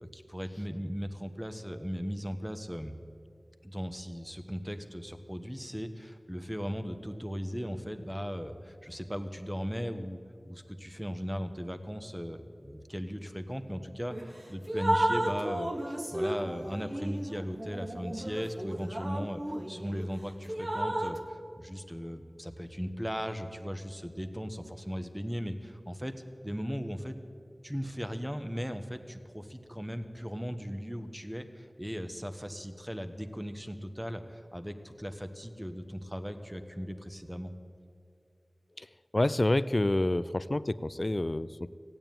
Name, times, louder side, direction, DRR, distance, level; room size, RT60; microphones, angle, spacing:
voice 1, 0.0-2.9 3.6-10.2 10.4-19.4 19.7-26.1 26.4-27.2 27.6-37.5, equal, 5° right, 8 dB, 1.2 m, -37 dB
Drip, 14.1-14.3 14.7-20.1 20.5-21.2, right 1 dB, 35° right, 1.3 m, -33 dB
voice 2, 39.1-41.7, left 1 dB, 45° left, 16 dB, 0.4 m, -28 dB
16.0 x 9.1 x 9.2 m, 2.3 s
wide cardioid pair, 45°, 0 cm